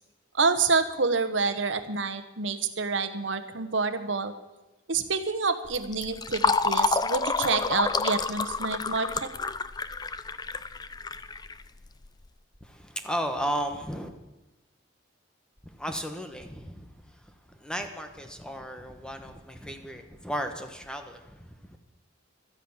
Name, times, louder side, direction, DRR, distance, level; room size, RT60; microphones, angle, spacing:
voice 1, 0.3-4.3 4.9-9.3, right 4 dB, 70° right, 10 dB, 1.2 m, -28 dB
Fill (with liquid), 5.7-12.1, left 4 dB, 20° left, 0.5 m, -29 dB
voice 2, 12.6-14.1 15.6-21.8, equal, 5° left, 5 dB, 1.3 m, -35 dB
13.0 x 10.0 x 8.8 m, 1.0 s
head